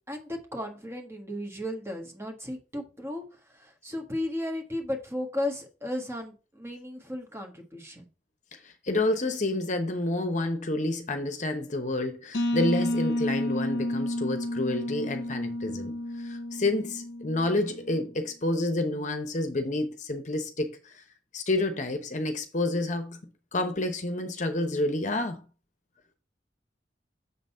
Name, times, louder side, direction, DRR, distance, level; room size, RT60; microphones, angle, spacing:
voice 1, 0.1-8.1, left 1 dB, 15° right, 1.4 m, -35 dB
voice 2, 8.6-21.0 21.3-23.2 23.5-25.4, left 2 dB, 45° left, 0.9 m, -29 dB
sound 1, 12.3-17.9, left 1 dB, 75° left, 0.7 m, -31 dB
6.9 x 4.0 x 5.5 m
head